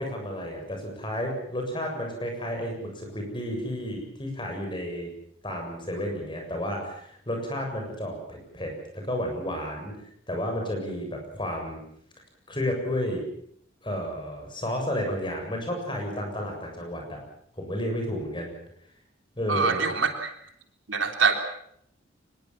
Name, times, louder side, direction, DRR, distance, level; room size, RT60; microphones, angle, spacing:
voice 1, 0.0-5.1 5.4-9.9 10.3-11.8 12.5-13.2 13.8-17.2 17.6-18.5 19.4-19.8, equal, 25° left, 3 dB, 7.3 m, -32 dB
voice 2, 19.5-20.3 20.9-21.3, right 5 dB, 80° right, 5 dB, 3.4 m, -24 dB
24.5 x 21.0 x 7.4 m, 0.68 s
head